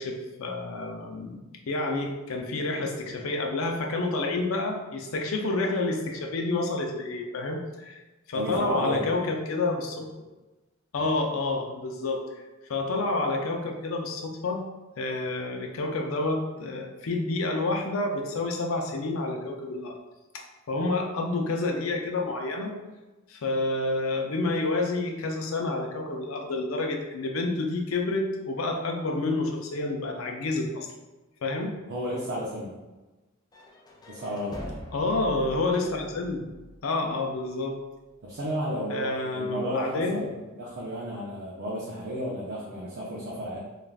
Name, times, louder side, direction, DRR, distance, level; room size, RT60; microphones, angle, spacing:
voice 1, 0.0-1.4 1.7-8.0 8.3-10.1 10.9-12.2 12.7-14.6 15.0-19.9 20.3-22.8 23.3-30.9 31.4-31.8 34.9-36.5 36.8-37.8 38.9-40.2, left 2 dB, 80° left, 2 dB, 0.5 m, -29 dB
voice 2, 8.3-9.0 10.9-11.0 31.9-32.8 34.1-34.8 38.2-43.6, equal, 55° right, -5 dB, 0.5 m, -33 dB
sound 1, 33.5-37.4, equal, 20° left, 0.3 m, -44 dB
3.2 x 2.4 x 2.3 m, 1.1 s
head